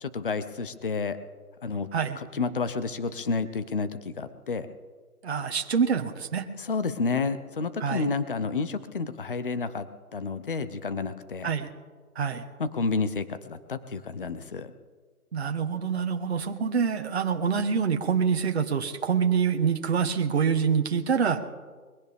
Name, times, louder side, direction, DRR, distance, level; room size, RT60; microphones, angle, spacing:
voice 1, 0.0-1.2 1.6-1.9 2.2-4.7 6.6-9.8 10.1-11.5 12.6-14.7, left 4 dB, 35° left, 13 dB, 0.8 m, -30 dB
voice 2, 5.2-6.5 7.8-8.1 11.4-11.7 12.1-12.4 15.3-21.5, right 6 dB, 45° right, 5 dB, 1.3 m, -26 dB
22.0 x 17.0 x 3.6 m, 1.4 s
hypercardioid pair, 165°, 46 cm